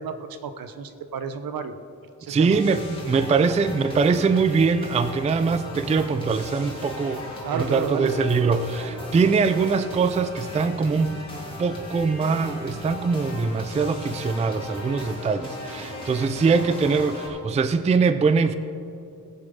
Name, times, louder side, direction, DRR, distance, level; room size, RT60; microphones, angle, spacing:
voice 1, 0.0-1.7 2.2-2.6 7.4-8.2, right 6 dB, 70° right, 10 dB, 0.9 m, -31 dB
voice 2, 2.3-7.2 7.5-11.2 11.6-18.6, right 4 dB, 20° right, 11 dB, 0.3 m, -22 dB
sound 1, 2.5-17.3, left 1 dB, 15° left, 2.6 m, -37 dB
19.5 x 7.0 x 5.5 m, 2.6 s
wide cardioid pair, 165°, 36 cm